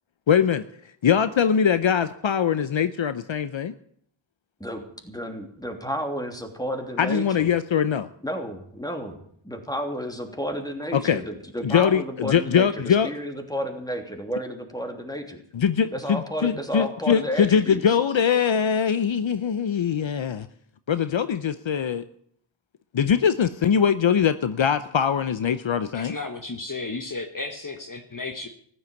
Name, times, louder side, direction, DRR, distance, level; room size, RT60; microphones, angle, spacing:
voice 1, 0.3-0.6 1.0-3.7 7.0-8.1 10.9-11.2 11.6-13.1 15.5-20.5 20.9-22.0 22.9-26.2, left 7 dB, 65° left, 12 dB, 0.8 m, -22 dB
voice 2, 4.6-7.5 8.2-15.4 15.9-17.8, equal, 10° left, 4 dB, 3.0 m, -32 dB
voice 3, 25.9-28.5, left 3 dB, 40° left, 6 dB, 1.4 m, -33 dB
14.5 x 11.0 x 7.1 m, 0.65 s
wide cardioid pair, 60°, 50 cm